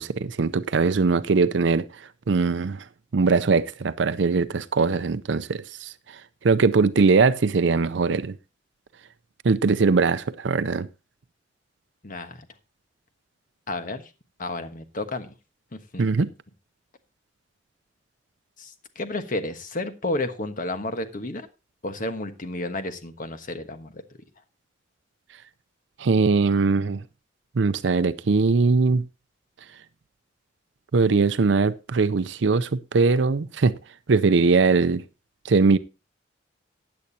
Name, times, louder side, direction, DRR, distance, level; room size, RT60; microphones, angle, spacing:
voice 1, 0.0-1.8 2.3-2.8 3.1-6.2 6.4-8.4 9.4-10.9 16.0-16.3 26.0-27.0 27.6-29.0 30.9-33.7 34.1-35.0 35.4-35.8, right 4 dB, 75° right, 0.5 m, -21 dB
voice 2, 12.0-12.5 13.7-14.1 14.4-15.3 15.9-16.3 18.6-21.5 21.8-24.0, left 2 dB, 45° left, 1.3 m, -31 dB
15.5 x 9.4 x 2.8 m
head